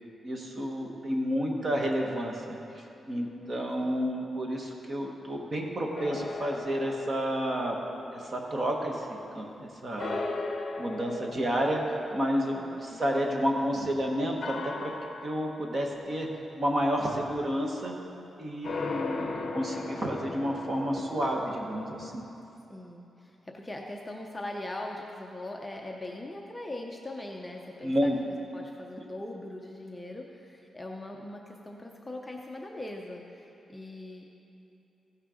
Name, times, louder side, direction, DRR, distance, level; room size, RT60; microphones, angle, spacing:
voice 1, 0.2-7.8 8.1-10.2 10.8-14.9 15.2-16.3 16.5-18.0 18.4-22.2 27.8-28.2, equal, 30° right, 1 dB, 1.1 m, -30 dB
sound 1, 6.0-9.6 10.0-13.8 14.4-16.2 18.6-22.1, left 3 dB, 45° left, 0.9 m, -38 dB
voice 2, 12.5-13.0 22.7-28.1 28.5-34.2, left 1 dB, 10° left, 0 dB, 0.6 m, -41 dB
15.5 x 6.5 x 4.9 m, 2.9 s
wide cardioid pair, 175°, 0 cm